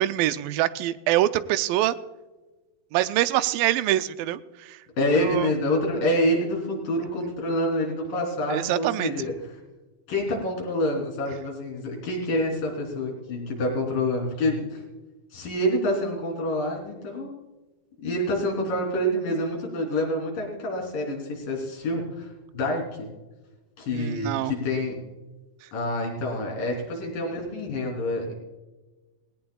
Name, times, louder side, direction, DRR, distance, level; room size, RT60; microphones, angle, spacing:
voice 1, 0.0-2.0 2.9-4.8 5.2-5.5 8.5-9.1 23.9-24.5, right 14 dB, 85° right, 12 dB, 2.3 m, -25 dB
voice 2, 5.0-9.5 10.1-14.8 15.3-17.4 18.0-23.1 23.8-25.0 25.7-28.3, left 1 dB, 70° left, -1 dB, 5.2 m, -27 dB
18.5 x 17.5 x 2.3 m, 1.1 s
omnidirectional pair, 4.0 m